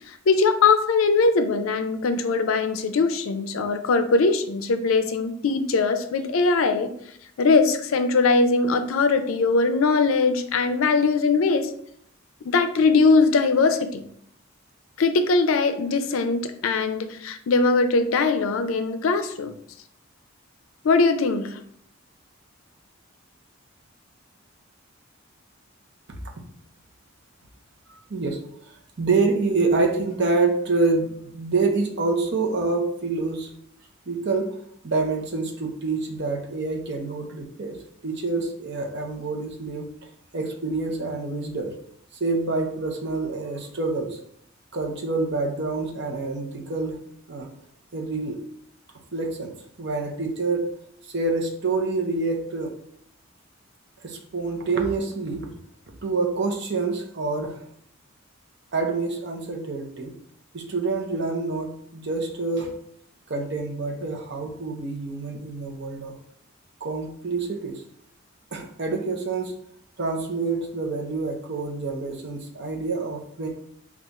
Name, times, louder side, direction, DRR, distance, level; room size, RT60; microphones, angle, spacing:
voice 1, 0.1-6.9 7.4-11.7 12.5-14.0 15.0-19.5 20.8-21.6, left 4 dB, 80° left, 9 dB, 0.4 m, -21 dB
voice 2, 28.7-33.5 34.1-34.6 34.8-37.8 38.0-39.9 40.3-41.7 42.2-44.2 44.7-47.0 47.3-47.5 47.9-48.4 49.1-50.6 51.1-52.7 54.0-55.5 56.0-57.6 58.7-60.1 60.5-62.7 63.3-66.1 66.8-67.8 68.5-69.5 70.0-73.5, right 3 dB, 55° right, 2 dB, 0.7 m, -27 dB
3.6 x 2.4 x 4.0 m, 0.66 s
head